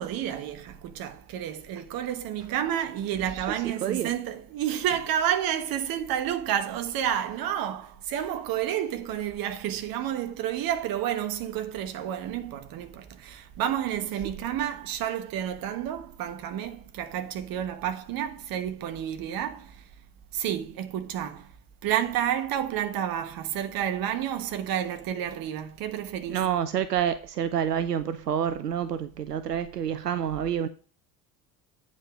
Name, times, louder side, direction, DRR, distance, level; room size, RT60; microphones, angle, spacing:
voice 1, 0.0-19.8 20.3-21.5 21.8-26.5, right 10 dB, 45° right, 1.3 m, -30 dB
voice 2, 3.8-4.1 26.3-30.7, right 9 dB, 85° right, 0.6 m, -28 dB
9.1 x 5.2 x 4.9 m
figure-of-eight pair, 60°, 46 cm